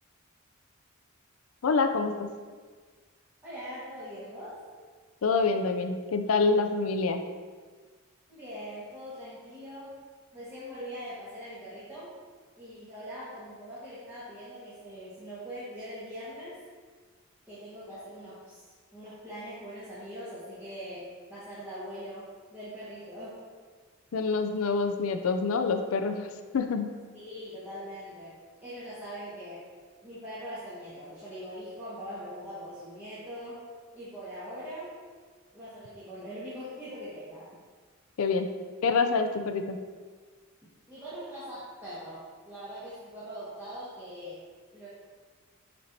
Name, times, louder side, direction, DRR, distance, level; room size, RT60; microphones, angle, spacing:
voice 1, 1.6-2.3 5.2-7.2 24.1-26.3 26.5-26.9 38.2-38.5 38.8-39.8, left 4 dB, 75° left, 7 dB, 0.4 m, -26 dB
voice 2, 3.4-4.6 8.3-10.0 10.3-12.1 12.6-16.6 17.5-23.4 27.1-29.6 30.0-33.6 33.9-34.9 35.5-37.6 40.9-44.4 44.7-44.9, equal, 10° right, -12 dB, 1.5 m, -42 dB
8.1 x 4.4 x 2.7 m, 1.5 s
head